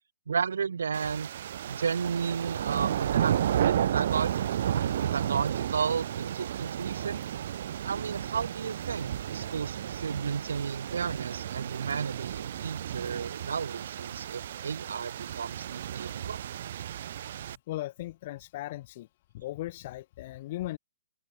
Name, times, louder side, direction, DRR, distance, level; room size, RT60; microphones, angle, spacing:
voice 1, 0.3-1.3 1.7-7.2 7.8-16.4, right 6 dB, 80° right, 2.9 m, -33 dB
sound 1, 0.9-17.6, right 10 dB, 50° right, 1.9 m, -33 dB
voice 2, 17.7-19.1 19.3-20.8, left 16 dB, 35° left, 5.6 m, -37 dB
hypercardioid pair, 160°, 0 cm